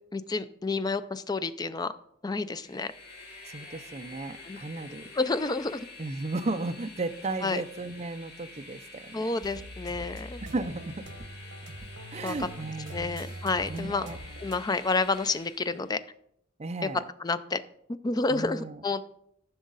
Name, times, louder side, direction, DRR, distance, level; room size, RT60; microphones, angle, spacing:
voice 1, 0.1-1.9 2.2-2.9 4.4-4.6 5.2-5.9 7.4-7.6 9.1-10.4 12.2-12.3 12.9-14.1 14.4-16.0 17.2-17.6 18.0-19.1, left 3 dB, 20° left, 13 dB, 0.4 m, -29 dB
Train, 2.4-15.9, left 3 dB, 55° left, 3.0 m, -48 dB
voice 2, 3.5-5.1 6.0-9.3 10.5-11.1 12.1-13.2 13.7-14.2 16.6-17.0 18.3-18.8, right 2 dB, 35° right, 9 dB, 0.5 m, -35 dB
sound 1, 9.4-14.6, right 1 dB, 80° right, 1.1 m, -43 dB
14.0 x 6.2 x 4.0 m, 0.73 s
head